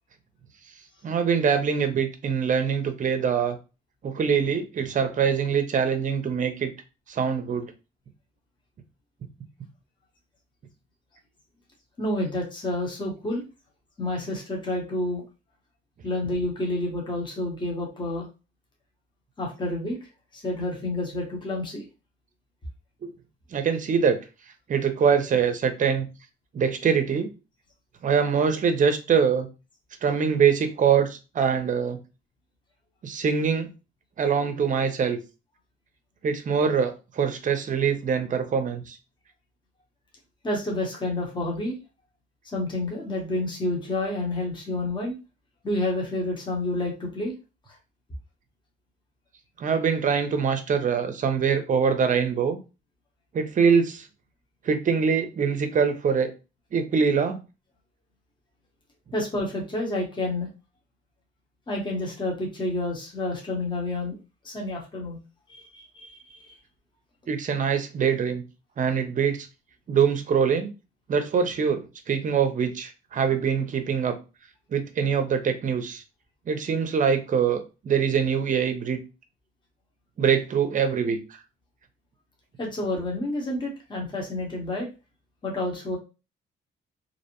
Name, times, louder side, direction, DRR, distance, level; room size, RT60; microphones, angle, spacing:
voice 1, 1.0-3.6 4.0-6.7 7.1-7.7 23.0-23.1 23.5-24.2 24.7-26.1 26.5-27.3 28.0-29.5 30.0-32.0 33.0-33.7 34.2-35.2 36.2-39.0 49.6-52.6 53.3-54.1 54.6-56.3 56.7-57.4 67.3-68.4 68.8-69.5 69.9-70.7 71.1-74.2 74.7-76.0 76.5-79.0 80.2-81.4, right 6 dB, 40° right, 8 dB, 0.6 m, -24 dB
voice 2, 12.0-13.4 14.0-15.2 16.0-18.3 19.4-20.0 20.3-21.8 40.4-41.8 42.4-45.2 45.6-47.3 59.1-60.5 61.7-64.2 64.4-65.2 65.5-66.5 82.6-84.9 85.4-86.0, left 1 dB, 25° left, -1 dB, 0.9 m, -29 dB
2.6 x 2.0 x 2.9 m, 0.30 s
cardioid pair, 90°, 20 cm